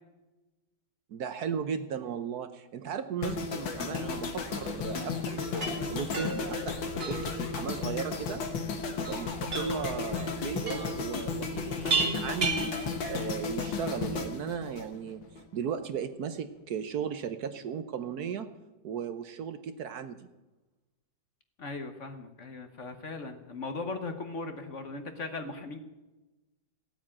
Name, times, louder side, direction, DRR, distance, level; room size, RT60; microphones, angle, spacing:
voice 1, 1.1-8.4 9.0-12.8 13.1-18.5 18.8-20.3, right 7 dB, 65° right, 10 dB, 1.2 m, -36 dB
sound 1, 3.2-15.4 15.7-16.0, left 5 dB, 85° left, 2.2 m, -34 dB
sound 2, 5.4-13.5, right 3 dB, 35° right, 1.6 m, -35 dB
voice 2, 21.6-25.8, left 3 dB, 45° left, 7 dB, 1.3 m, -38 dB
16.0 x 8.8 x 8.7 m, 1.1 s
omnidirectional pair, 2.0 m